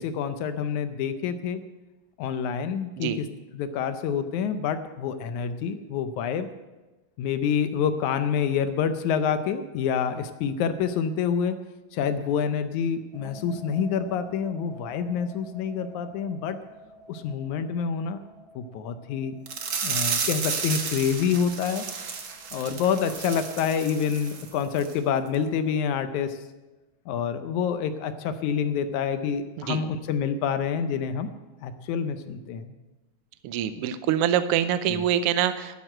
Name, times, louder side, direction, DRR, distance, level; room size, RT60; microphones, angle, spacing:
voice 1, 0.0-1.6 2.2-3.3 3.5-6.5 7.2-11.6 11.9-16.6 17.1-18.2 18.6-19.3 19.8-21.9 22.5-26.4 27.1-31.3 31.6-32.7 34.9-35.0, left 7 dB, 80° left, 9 dB, 2.1 m, -27 dB
sound 1, 13.1-24.9, equal, 10° left, 2.7 m, -50 dB
sound 2, 19.5-24.5 24.8-24.9 25.3-25.4, right 6 dB, 50° right, 1.7 m, -32 dB
voice 2, 33.4-35.8, right 10 dB, 90° right, 11 dB, 1.3 m, -25 dB
12.5 x 9.2 x 7.6 m, 1.1 s
omnidirectional pair, 3.5 m